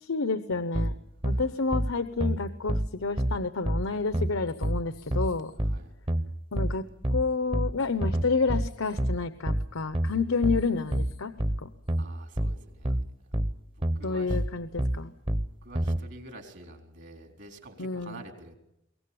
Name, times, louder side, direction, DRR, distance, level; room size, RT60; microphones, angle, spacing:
voice 1, 0.1-0.9 1.2-5.5 6.5-6.8 7.1-11.3 11.6-11.7 14.0-15.1 17.8-18.2, left 4 dB, 90° left, 11 dB, 0.9 m, -29 dB
sound 1, 0.7-16.0, right 1 dB, 25° right, 0.9 m, -28 dB
voice 2, 5.6-5.9 12.0-12.9 14.0-14.4 15.6-18.6, right 1 dB, 60° right, 5 dB, 3.9 m, -47 dB
23.0 x 18.0 x 8.6 m, 0.82 s
head